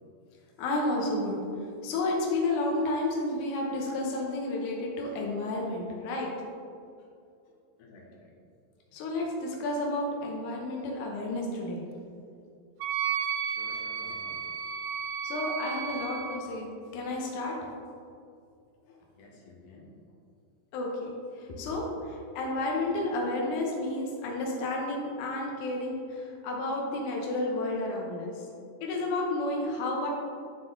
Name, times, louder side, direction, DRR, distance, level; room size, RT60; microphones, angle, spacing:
voice 1, 0.6-1.4 1.8-6.3 8.9-11.8 15.2-17.6 20.7-28.5 28.8-30.1, left 2 dB, 90° left, -1 dB, 1.7 m, -31 dB
voice 2, 7.8-8.3 13.4-14.4 19.2-19.9 21.5-21.6, left 3 dB, 70° left, -2 dB, 2.0 m, -50 dB
Wind instrument woodwind instrument, 12.8-16.4, right 7 dB, 90° right, 2.0 m, -33 dB
11.0 x 3.8 x 3.7 m, 2.4 s
omnidirectional pair, 4.8 m